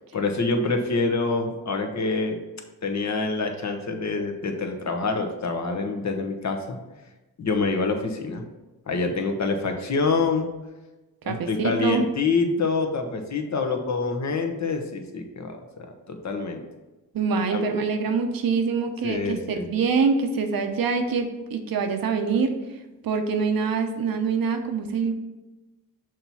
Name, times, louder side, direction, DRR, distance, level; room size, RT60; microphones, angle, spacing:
voice 1, 0.1-2.4 2.8-6.8 7.4-8.4 8.9-10.5 11.2-16.6 17.5-17.6 19.0-19.7, left 4 dB, 45° left, 4 dB, 1.1 m, -26 dB
voice 2, 11.2-12.0 17.1-22.6 23.0-25.1, right 5 dB, 70° right, 6 dB, 0.9 m, -25 dB
6.4 x 3.0 x 5.6 m, 1.1 s
cardioid pair, 60°, 37 cm